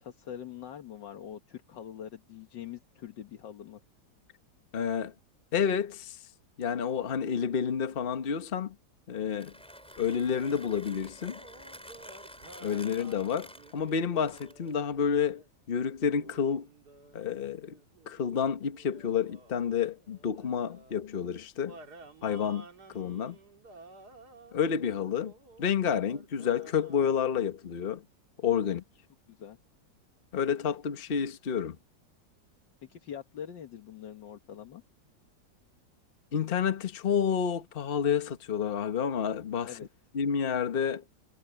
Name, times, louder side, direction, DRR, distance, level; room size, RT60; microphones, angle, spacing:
voice 1, 0.0-3.8 29.3-29.6 32.9-34.8 39.6-39.9, left 9 dB, 75° left, 2.0 m, -44 dB
voice 2, 4.7-5.1 5.5-6.2 6.6-8.7 9.1-9.5 10.0-11.4 12.6-15.4 15.7-16.7 17.1-17.8 18.1-21.8 22.2-22.7 22.9-23.4 24.5-25.3 25.6-28.0 28.4-28.8 30.3-31.8 36.3-39.8 40.1-41.0, left 7 dB, 35° left, 1.2 m, -29 dB
Mechanisms, 9.2-14.8, equal, 5° left, 7.4 m, -49 dB
sound 1, 11.2-15.5 16.1-21.0 21.7-27.4, right 3 dB, 60° right, 3.2 m, -53 dB
omnidirectional pair, 2.0 m